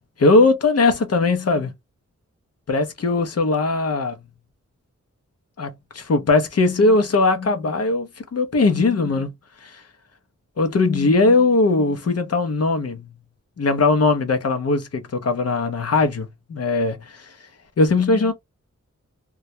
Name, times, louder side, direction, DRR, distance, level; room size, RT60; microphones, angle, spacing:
voice 1, 0.2-1.7 2.7-4.2 5.6-9.3 9.6-9.8 10.6-13.1 13.6-17.3 17.8-18.3, left 3 dB, 55° left, 0.6 m, -19 dB
2.3 x 2.1 x 2.6 m
wide cardioid pair, 100°, 29 cm